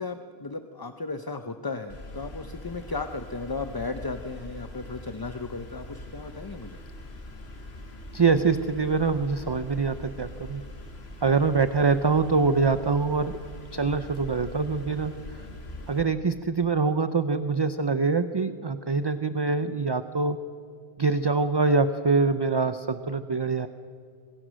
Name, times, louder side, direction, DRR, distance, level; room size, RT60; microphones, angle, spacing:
voice 1, 0.0-6.8, left 3 dB, 25° left, 8 dB, 0.6 m, -35 dB
sound 1, 1.9-16.0, left 1 dB, 70° left, 2.5 m, -42 dB
voice 2, 8.1-10.6 11.2-13.4 13.7-15.1 15.9-20.4 21.0-23.7, right 4 dB, 30° right, 10 dB, 0.5 m, -24 dB
26.0 x 21.5 x 6.3 m, 2.2 s
omnidirectional pair, 1.1 m